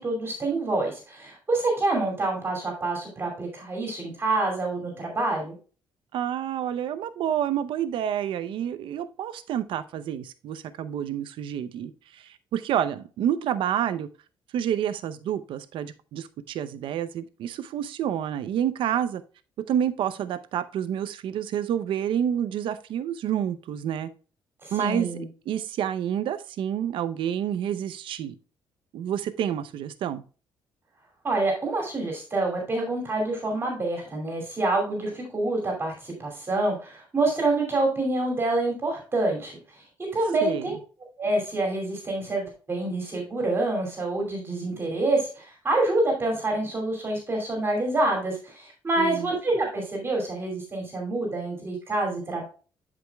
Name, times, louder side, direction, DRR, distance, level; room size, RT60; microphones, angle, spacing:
voice 1, 0.0-5.5 24.6-25.2 31.2-39.5 40.1-40.8 41.2-52.4, right 2 dB, 25° right, 2.5 m, -27 dB
voice 2, 6.1-14.1 14.5-19.2 19.7-24.1 24.7-25.1 25.5-28.3 28.9-30.2 40.4-40.7 49.0-49.3, right 10 dB, 70° right, 0.6 m, -29 dB
11.5 x 5.1 x 2.2 m
cardioid pair, 150°, 9 cm